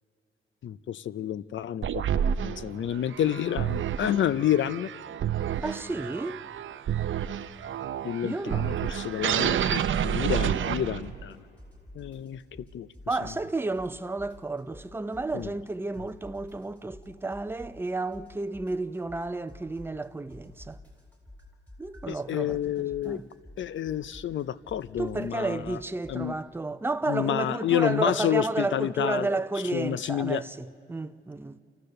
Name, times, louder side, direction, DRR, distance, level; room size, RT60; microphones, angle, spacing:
voice 1, 0.6-4.9 8.0-11.4 11.9-12.4 12.7-12.9 15.3-15.5 22.1-23.2 23.6-25.8 26.1-26.3 27.1-29.4 29.7-30.4, left 10 dB, 65° left, 0.5 m, -29 dB
sound 1, 1.8-11.3, right 9 dB, 70° right, 0.6 m, -29 dB
voice 2, 5.6-6.4 8.2-8.6 13.1-20.8 21.8-23.3 25.0-31.6, right 2 dB, 10° right, 0.5 m, -32 dB
sound 2, 8.8-9.1 9.4-11.3 11.6-13.5 13.8-15.7 15.9-20.0 20.3-26.2, left 1 dB, 10° left, 3.5 m, -49 dB
29.5 x 13.5 x 6.6 m
cardioid pair, 105°, 21 cm